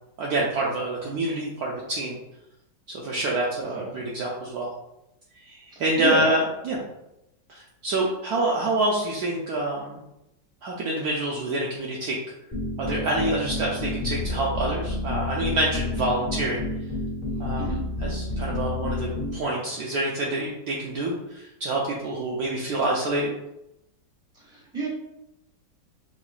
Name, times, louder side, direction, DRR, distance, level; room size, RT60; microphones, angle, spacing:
voice 1, 0.2-2.2 2.9-4.7 5.4-6.8 7.5-10.0 10.6-12.2 12.8-16.7 17.4-17.7 18.0-23.3, right 2 dB, 70° right, -3 dB, 1.0 m, -27 dB
voice 2, 3.7-4.0 5.7-6.2 17.6-17.8 24.3-24.9, right 2 dB, 5° right, -6 dB, 1.1 m, -32 dB
sound 1, 12.5-19.4, left 2 dB, 30° left, 1.2 m, -30 dB
5.9 x 2.3 x 2.4 m, 0.88 s
omnidirectional pair, 2.0 m